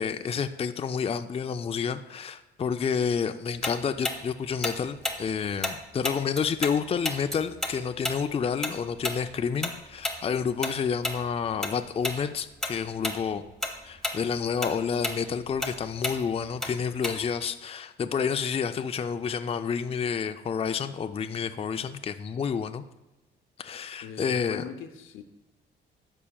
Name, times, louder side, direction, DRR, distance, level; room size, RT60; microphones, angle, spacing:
voice 1, 0.0-13.4 13.8-22.8 23.6-24.6, left 6 dB, 30° left, 8 dB, 0.4 m, -29 dB
Tick-tock, 3.6-6.8 7.0-11.8 12.0-12.2 12.6-13.2 13.5-17.5, left 1 dB, 5° left, 1.1 m, -32 dB
voice 2, 24.0-25.2, left 8 dB, 85° left, 8 dB, 0.7 m, -40 dB
13.5 x 5.7 x 2.3 m, 1.0 s
cardioid pair, 90°, 20 cm